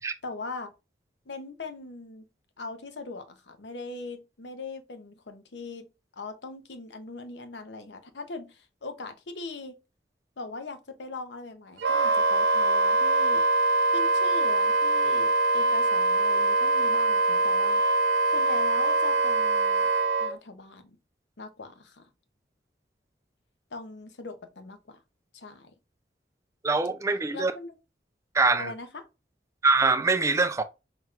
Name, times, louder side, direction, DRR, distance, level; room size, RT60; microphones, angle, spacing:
voice 1, 0.2-0.7 1.3-2.2 2.6-5.8 6.2-9.8 10.4-13.4 13.9-17.8 18.3-19.9 20.2-21.0 21.4-22.1 23.7-25.0 25.3-25.7 27.3-27.8 28.6-29.0, left 3 dB, 85° left, 0.8 m, -40 dB
Wind instrument woodwind instrument, 11.8-20.3, right 3 dB, 80° right, 0.6 m, -23 dB
voice 2, 26.6-27.5 28.3-28.7 29.6-30.6, right 3 dB, 15° right, 0.3 m, -23 dB
5.8 x 3.0 x 2.4 m
head